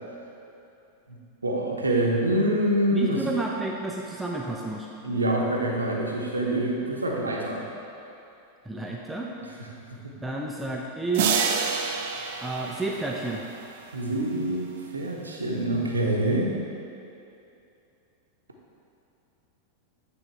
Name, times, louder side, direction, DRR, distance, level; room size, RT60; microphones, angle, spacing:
voice 1, 1.4-3.2 5.0-7.6 13.9-16.5, right 1 dB, 80° right, -2 dB, 0.8 m, -25 dB
voice 2, 2.9-4.9 8.6-9.3 10.2-11.6 12.4-13.4, right 2 dB, 5° right, -2 dB, 0.5 m, -31 dB
sound 1, 11.1-13.6, right 6 dB, 55° right, 0.5 m, -28 dB
8.9 x 3.7 x 4.5 m, 2.8 s
figure-of-eight pair, 90°, 0 cm